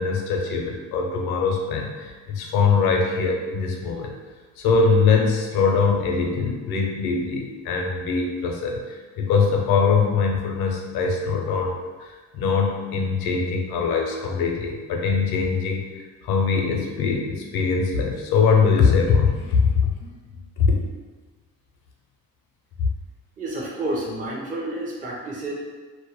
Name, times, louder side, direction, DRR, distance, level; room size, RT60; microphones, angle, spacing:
voice 1, 0.0-4.1 4.6-11.7 12.0-15.8 16.2-20.2 20.6-20.8, left 5 dB, 90° left, 1 dB, 0.5 m, -22 dB
voice 2, 23.4-25.5, right 1 dB, 20° right, -4 dB, 0.5 m, -30 dB
2.2 x 2.1 x 2.9 m, 1.4 s
supercardioid pair, 65°, 36 cm